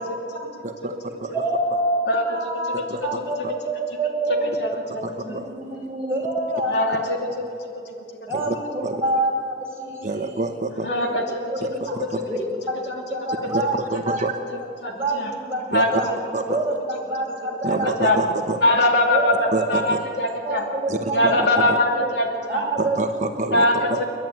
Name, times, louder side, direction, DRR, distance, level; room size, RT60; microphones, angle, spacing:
voice 1, 0.0-0.5 1.3-4.5 5.2-7.0 8.3-9.3 9.7-10.5 10.9-11.9 12.2-13.8 14.1-14.2 14.9-16.1 16.5-18.1 19.1-19.8 20.4-21.4 22.0-22.2 22.5-23.0 23.5-23.7, right 1 dB, 15° right, -3 dB, 5.4 m, -27 dB
voice 2, 0.6-1.3 2.9-3.0 3.4-3.5 4.9-5.4 8.3-8.6 8.8-9.0 10.0-10.9 11.6-12.2 13.4-14.3 15.7-15.8 16.3-16.6 17.6-18.6 19.5-20.0 20.9-21.3 21.7-21.8 22.8-24.0, right 2 dB, 45° right, 5 dB, 1.0 m, -27 dB
voice 3, 4.3-5.4 6.7-7.2 10.8-11.4 14.8-15.3 15.7-16.2 17.7-18.2 18.6-20.6 21.1-22.6 23.5-24.0, left 1 dB, 75° left, 1 dB, 2.6 m, -22 dB
29.5 x 11.0 x 9.1 m, 2.7 s
head